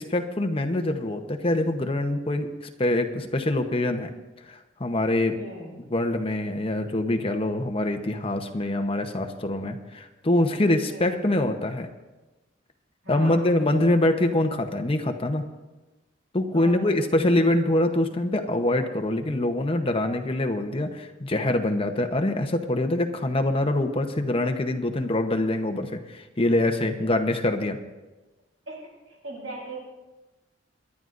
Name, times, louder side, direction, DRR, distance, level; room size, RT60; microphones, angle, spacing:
voice 1, 0.0-2.5 2.8-4.1 4.5-5.4 5.9-11.9 13.1-15.4 16.3-27.8, left 1 dB, 30° left, 5 dB, 0.9 m, -24 dB
voice 2, 5.3-5.8 10.9-11.3 13.0-13.5 16.5-17.3 27.2-27.3 28.7-29.8, right 1 dB, 85° right, -3 dB, 4.0 m, -40 dB
23.0 x 11.0 x 2.6 m, 1.1 s
head